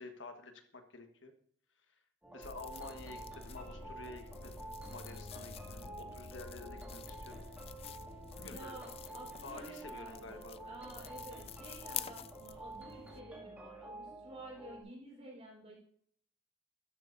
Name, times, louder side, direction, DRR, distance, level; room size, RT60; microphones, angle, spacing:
voice 1, 0.0-1.3 2.3-7.4 8.3-8.7 9.4-10.7, left 3 dB, 85° left, 6 dB, 1.4 m, -50 dB
sound 1, 2.2-14.8, right 2 dB, 10° right, 2.3 m, -49 dB
sound 2, 2.4-13.2, left 7 dB, 30° left, 0.3 m, -48 dB
voice 2, 8.4-15.8, right 1 dB, 35° right, -3 dB, 4.5 m, -52 dB
12.5 x 7.9 x 2.6 m, 0.62 s
head